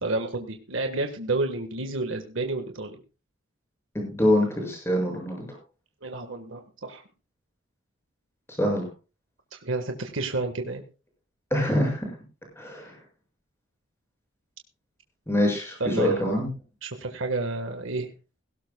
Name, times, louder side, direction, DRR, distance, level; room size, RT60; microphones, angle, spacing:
voice 1, 0.0-3.0 6.0-7.0 9.5-10.8 15.8-16.2 16.8-18.1, right 2 dB, 75° right, 5 dB, 1.5 m, -30 dB
voice 2, 3.9-5.6 8.6-8.9 11.5-12.2 12.5-12.9 15.3-16.5, left 1 dB, 10° left, 1 dB, 6.8 m, -25 dB
17.5 x 17.0 x 2.3 m, 0.32 s
head